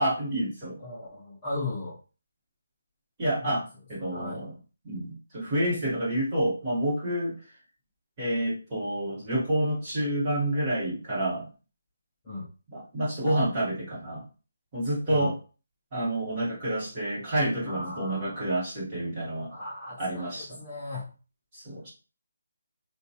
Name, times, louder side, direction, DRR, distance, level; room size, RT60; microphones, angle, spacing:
voice 1, 0.0-0.8 3.2-4.5 4.8-7.4 8.2-11.5 12.7-14.2 14.7-15.4 15.9-19.5 20.0-20.5 21.5-21.9, right 1 dB, 15° right, -6 dB, 1.2 m, -28 dB
voice 2, 0.8-2.0 3.4-3.5 4.0-4.4 12.2-12.5 15.1-15.3 17.7-18.6 19.5-21.1, left 2 dB, 15° left, -8 dB, 0.5 m, -37 dB
4.1 x 2.2 x 2.8 m, 0.34 s
hypercardioid pair, 180°, 0 cm